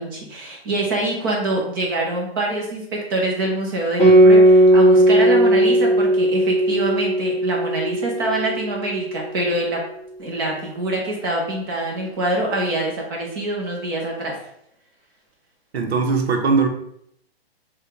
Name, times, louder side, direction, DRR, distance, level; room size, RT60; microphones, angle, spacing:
voice 1, 0.0-9.8 10.2-14.3, right 2 dB, 20° right, -2 dB, 0.8 m, -25 dB
Guitar, 4.0-8.9, right 1 dB, 10° left, 0.7 m, -15 dB
voice 2, 15.7-16.7, right 4 dB, 75° right, 4 dB, 1.0 m, -19 dB
5.3 x 2.4 x 3.2 m, 0.72 s
hypercardioid pair, 170°, 32 cm